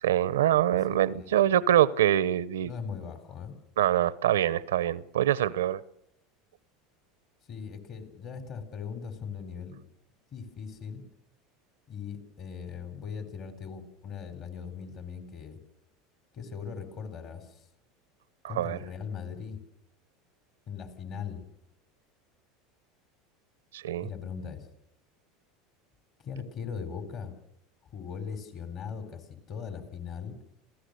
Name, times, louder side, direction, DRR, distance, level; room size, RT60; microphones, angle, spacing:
voice 1, 0.0-2.7 3.8-5.8 18.4-18.8 23.7-24.1, right 11 dB, 90° right, 0.7 m, -24 dB
voice 2, 2.6-3.5 7.5-9.8 10.3-11.0 11.9-15.6 16.3-17.6 18.5-19.6 20.7-21.4 24.0-24.6 26.2-27.3 27.9-30.3, left 6 dB, 50° left, 4.1 m, -39 dB
27.0 x 17.0 x 6.7 m
hypercardioid pair, 95°, 0 cm